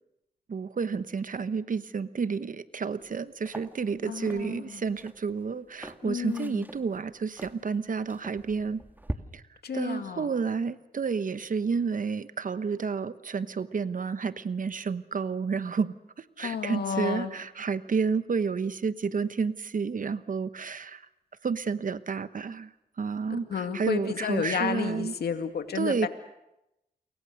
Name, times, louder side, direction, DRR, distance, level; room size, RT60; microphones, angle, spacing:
voice 1, 0.5-8.8 9.3-9.4 9.7-21.0 21.4-22.7 23.0-23.4 23.7-25.1 25.7-26.1, right 5 dB, 55° right, 13 dB, 1.1 m, -30 dB
sound 1, 3.0-3.1 3.4-9.2, right 1 dB, 10° right, 1.9 m, -42 dB
voice 2, 4.0-4.8 6.0-6.6 9.6-10.3 16.4-17.3 23.3-26.1, left 7 dB, 80° left, 7 dB, 2.3 m, -32 dB
29.0 x 23.5 x 6.6 m, 0.87 s
cardioid pair, 60°, 16 cm